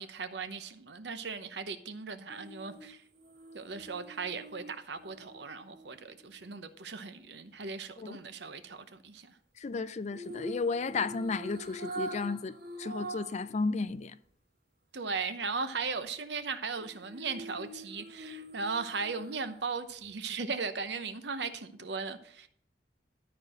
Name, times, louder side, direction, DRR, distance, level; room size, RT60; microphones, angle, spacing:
voice 1, 0.0-3.0 3.5-9.3 14.9-22.5, right 4 dB, 70° right, 0.9 m, -37 dB
sound 1, 2.3-6.5 10.1-13.5 13.9-14.0 16.8-19.7 20.0-20.1, right 2 dB, 55° right, 2.0 m, -45 dB
voice 2, 9.6-14.2, left 4 dB, 40° left, 0.4 m, -33 dB
12.5 x 4.5 x 6.4 m
head